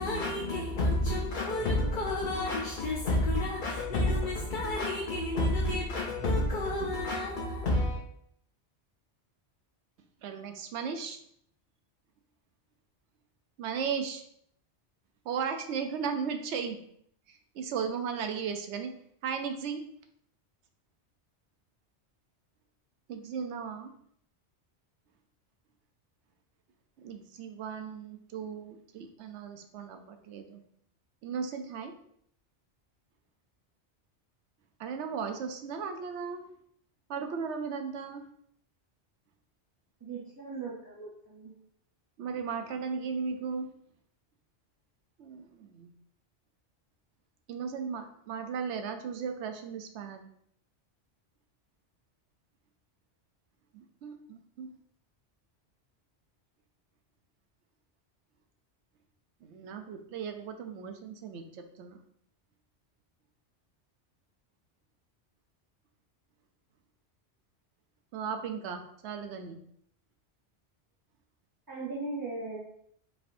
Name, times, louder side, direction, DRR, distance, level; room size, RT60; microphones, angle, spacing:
voice 1, 0.0-8.0, left 1 dB, 55° left, 0.7 m, -29 dB
voice 2, 10.2-11.2 13.6-14.2 15.2-16.8 17.3-18.9 19.2-19.8 23.1-23.9 27.0-30.6 31.2-31.9 34.8-36.4 37.1-38.2 42.2-43.7 45.2-45.9 47.5-50.3 53.7-54.8 59.4-62.0 68.1-69.6, right 6 dB, 80° right, 0.9 m, -36 dB
voice 3, 40.0-41.5 71.7-72.6, right 3 dB, 25° right, 0.5 m, -38 dB
4.7 x 3.5 x 2.5 m
omnidirectional pair, 1.2 m